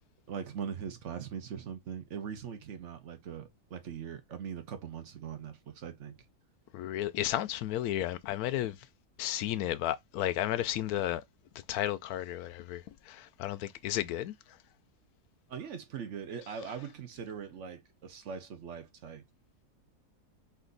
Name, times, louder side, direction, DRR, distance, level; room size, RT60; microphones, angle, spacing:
voice 1, 0.3-6.1 15.5-19.2, right 7 dB, 50° right, 1.2 m, -41 dB
voice 2, 6.7-8.9 9.2-11.2 11.7-14.6, left 13 dB, 70° left, 1.1 m, -33 dB
4.3 x 2.7 x 3.9 m
omnidirectional pair, 1.7 m